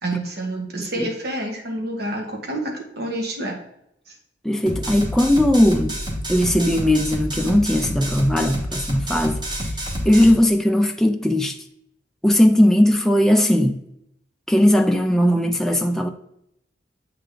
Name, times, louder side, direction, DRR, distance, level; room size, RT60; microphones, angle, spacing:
voice 1, 0.0-3.6 4.1-4.2, right 1 dB, 60° right, 1.1 m, -28 dB
voice 2, 0.8-1.1 4.4-6.0 6.3-9.7 10.1-11.6 12.2-13.8 14.5-16.1, left 1 dB, 5° left, 0.3 m, -18 dB
sound 1, 4.7-10.3, equal, 25° right, 1.1 m, -28 dB
7.7 x 3.3 x 3.7 m
head